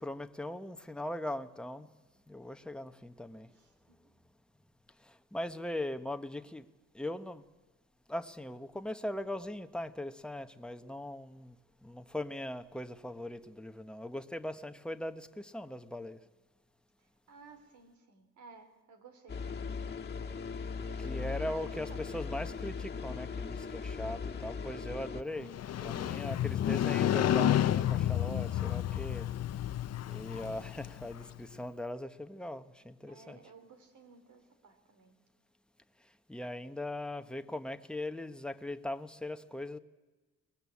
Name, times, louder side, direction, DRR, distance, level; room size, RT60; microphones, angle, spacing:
voice 1, 0.0-1.9 2.3-3.5 5.1-6.7 6.9-7.4 8.1-11.5 11.8-16.2 21.0-25.5 25.8-29.3 30.1-33.4 36.3-39.8, left 1 dB, 5° left, 1.1 m, -40 dB
voice 2, 3.5-4.0 17.3-20.0 20.8-22.5 33.1-35.2, right 4 dB, 75° right, 3.5 m, -57 dB
sound 1, 19.3-25.2, left 5 dB, 35° left, 1.7 m, -39 dB
Motorcycle, 25.4-31.3, left 11 dB, 55° left, 0.8 m, -31 dB
23.5 x 19.0 x 8.5 m
cardioid pair, 90°, 30 cm